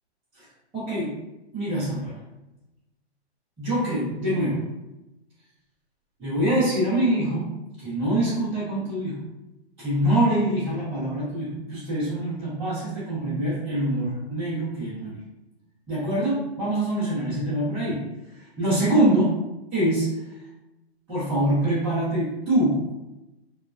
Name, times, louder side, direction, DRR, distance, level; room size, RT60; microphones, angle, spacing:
voice 1, 0.7-1.2 1.5-2.2 3.6-4.6 6.2-7.5 7.8-9.2 9.8-15.2 15.9-18.0 18.6-19.4 19.7-20.1 21.1-22.9, right 1 dB, 5° right, -18 dB, 0.5 m, -24 dB
3.3 x 2.1 x 2.3 m, 0.99 s
hypercardioid pair, 155°, 33 cm